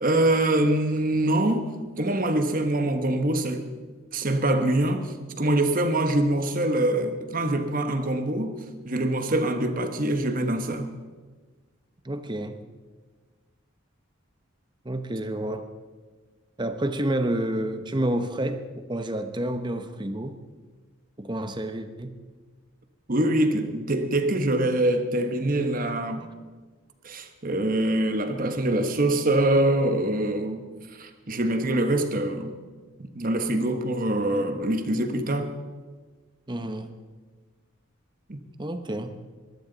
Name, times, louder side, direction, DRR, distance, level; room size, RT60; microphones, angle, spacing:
voice 1, 0.0-1.7 2.0-3.6 4.1-10.9 23.1-26.3 27.0-30.7 30.9-32.5 33.0-35.5 38.3-38.4, right 1 dB, 40° right, 1.2 m, -24 dB
voice 2, 12.0-12.6 14.8-15.7 16.6-20.4 21.2-22.2 34.3-34.5 36.5-36.9 38.6-39.2, right 1 dB, 20° right, 0.9 m, -29 dB
22.5 x 13.5 x 4.0 m
head